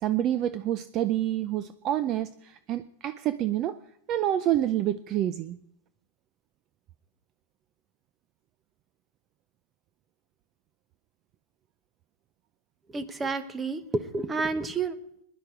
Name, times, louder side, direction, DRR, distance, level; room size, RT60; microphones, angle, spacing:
voice 1, 0.0-3.8 4.1-5.6, right 12 dB, 35° right, 13 dB, 0.5 m, -28 dB
voice 2, 12.9-14.9, right 3 dB, 15° right, 12 dB, 0.9 m, -30 dB
18.0 x 11.0 x 5.0 m, 0.76 s
supercardioid pair, 140°, 0 cm